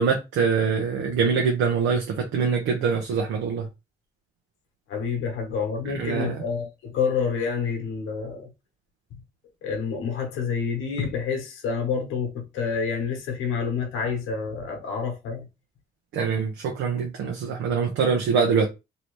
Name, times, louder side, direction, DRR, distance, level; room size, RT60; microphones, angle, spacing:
voice 1, 0.0-3.6 6.0-6.4 16.1-18.7, right 5 dB, 85° right, 0.8 m, -24 dB
voice 2, 4.9-8.5 9.6-15.4, left 6 dB, 85° left, 1.1 m, -28 dB
3.0 x 2.8 x 3.1 m
cardioid pair, 90°, 20 cm